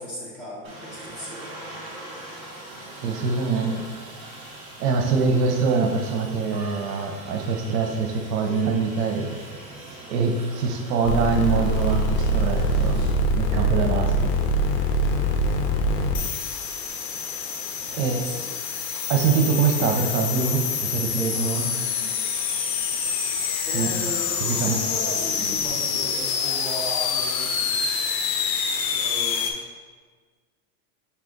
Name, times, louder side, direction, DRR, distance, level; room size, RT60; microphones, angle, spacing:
voice 1, 0.0-1.6 17.9-18.5 23.7-27.7 28.5-29.6, equal, 20° left, -9 dB, 1.3 m, -36 dB
Aircraft, 0.6-13.1, right 1 dB, 10° right, 0.3 m, -41 dB
voice 2, 3.0-4.2 4.8-9.4 10.1-14.3 17.9-18.3 19.1-22.1 23.7-23.9 24.4-24.7, right 5 dB, 75° right, 3 dB, 0.7 m, -24 dB
sound 1, 11.0-29.5, left 3 dB, 90° left, 0.7 m, -25 dB
5.6 x 2.4 x 3.8 m, 1.5 s
supercardioid pair, 170°, 48 cm